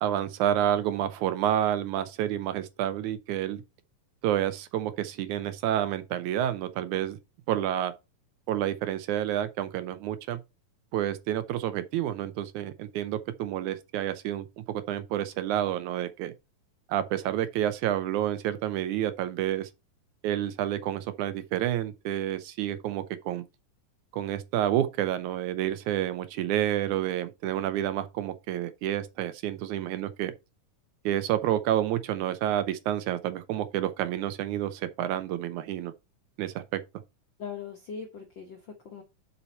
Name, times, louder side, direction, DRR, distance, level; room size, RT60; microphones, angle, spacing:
voice 1, 0.0-3.6 4.2-7.2 7.5-7.9 8.5-10.4 10.9-16.3 16.9-19.7 20.2-23.4 24.1-30.3 31.1-35.9 36.4-36.8, right 11 dB, 80° right, 2.0 m, -29 dB
voice 2, 37.4-39.0, left 6 dB, 65° left, 1.1 m, -40 dB
7.0 x 5.6 x 4.2 m
omnidirectional pair, 3.7 m